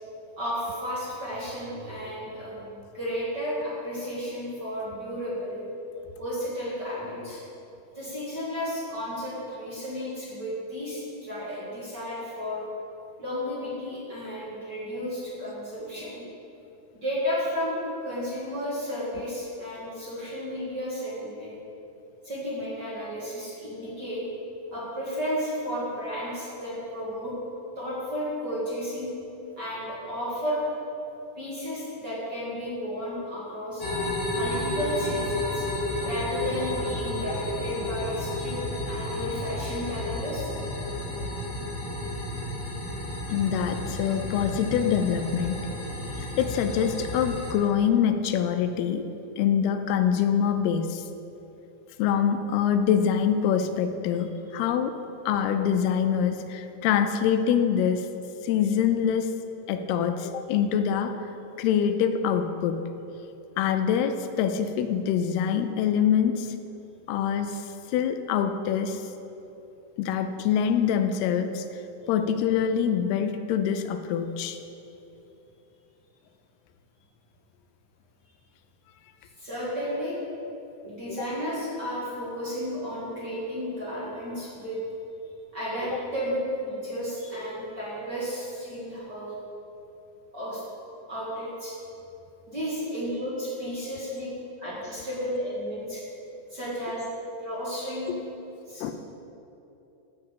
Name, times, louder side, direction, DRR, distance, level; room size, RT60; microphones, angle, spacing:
voice 1, 0.4-2.7 2.9-5.6 6.2-7.4 7.9-12.6 13.2-16.2 16.9-21.6 22.2-24.2 24.7-27.3 27.7-29.1 29.6-30.6 31.4-33.9 34.3-35.7 36.0-38.6 38.9-40.5 79.4-80.2 80.8-84.8 85.5-89.3 90.3-90.6 91.1-91.7 92.5-94.3 94.6-96.0 96.5-97.0 97.4-98.2 98.7-98.8, equal, 35° right, -9 dB, 1.9 m, -33 dB
sound 1, 33.8-47.5, left 1 dB, 50° left, 1.6 m, -32 dB
voice 2, 43.3-45.6 46.4-49.1 49.4-51.0 52.0-55.0 55.3-58.1 58.4-59.4 59.7-61.3 61.6-62.8 63.6-66.6 67.1-69.0 70.0-71.7 72.1-74.6 81.2-81.3 98.8-98.9, left 8 dB, 85° left, 8 dB, 2.5 m, -25 dB
11.5 x 4.8 x 8.0 m, 2.9 s
omnidirectional pair, 4.6 m